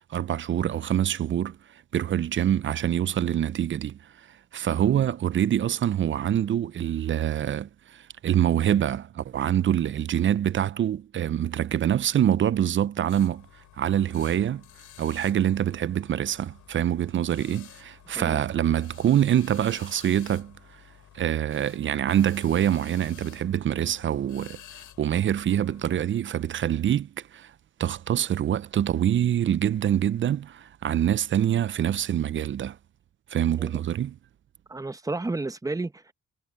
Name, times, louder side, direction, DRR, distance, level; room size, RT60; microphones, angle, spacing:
voice 1, 0.1-1.6 1.9-4.0 4.3-13.5 13.8-14.6 15.0-20.5 21.1-27.5 27.8-32.8 33.3-34.2, right 10 dB, 40° right, 0.5 m, -25 dB
sound 1, 13.1-26.1, left 12 dB, 80° left, 7.7 m, -51 dB
voice 2, 34.7-36.1, right 2 dB, 10° right, 0.9 m, -32 dB
cardioid pair, 90°, 30 cm